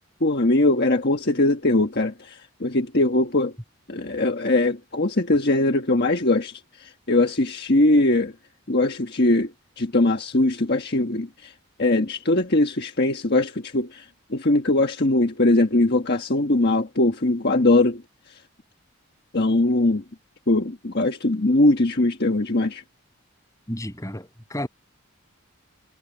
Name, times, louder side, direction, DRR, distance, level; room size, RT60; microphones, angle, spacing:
voice 1, 0.2-3.5 3.9-8.3 8.7-9.5 9.8-11.5 11.8-18.0 19.3-20.0 20.5-22.8, left 2 dB, 50° left, 1.4 m, -21 dB
voice 2, 23.7-24.7, left 1 dB, 15° left, 7.6 m, -32 dB
head